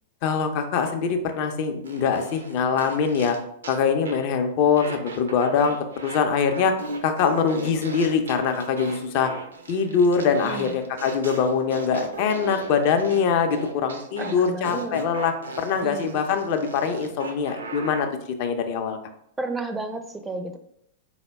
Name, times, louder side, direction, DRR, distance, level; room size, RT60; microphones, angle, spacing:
voice 1, 0.2-3.4 3.7-5.8 6.0-9.3 9.7-18.1 18.4-19.0, left 6 dB, 45° left, 6 dB, 0.5 m, -23 dB
sound 1, 1.8-4.3 4.8-6.2 6.5-18.0, right 2 dB, 75° right, 0.5 m, -37 dB
voice 2, 10.4-10.7 14.2-15.0 15.8-16.1 19.4-20.6, right 3 dB, 10° right, 6 dB, 0.4 m, -32 dB
3.9 x 2.1 x 3.3 m, 0.72 s
figure-of-eight pair, 100°, 0 cm